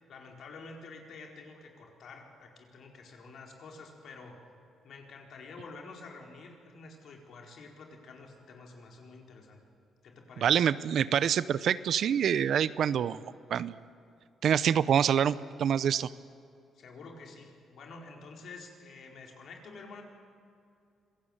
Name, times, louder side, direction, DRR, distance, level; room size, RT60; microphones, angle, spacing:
voice 1, 0.1-4.4 4.8-9.6 10.0-10.5 16.7-20.0, left 3 dB, 65° left, 1 dB, 4.5 m, -49 dB
voice 2, 10.4-13.2 13.5-13.8 14.4-16.1, right 8 dB, 65° right, 17 dB, 0.7 m, -26 dB
26.0 x 17.0 x 8.9 m, 2.5 s
cardioid pair, 90°, 0 cm